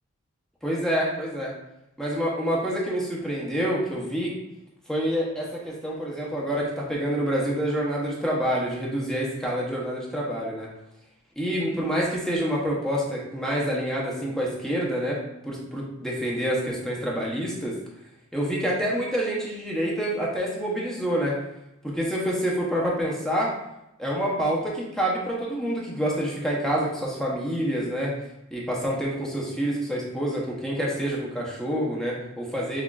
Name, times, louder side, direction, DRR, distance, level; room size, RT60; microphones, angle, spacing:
voice 1, 0.6-1.5 2.0-4.3 4.9-10.7 11.4-15.2 15.5-17.7 18.3-21.4 21.8-23.5 24.0-28.1 28.5-32.8, equal, ahead, -5 dB, 0.7 m, -27 dB
5.9 x 2.4 x 2.3 m, 0.87 s
head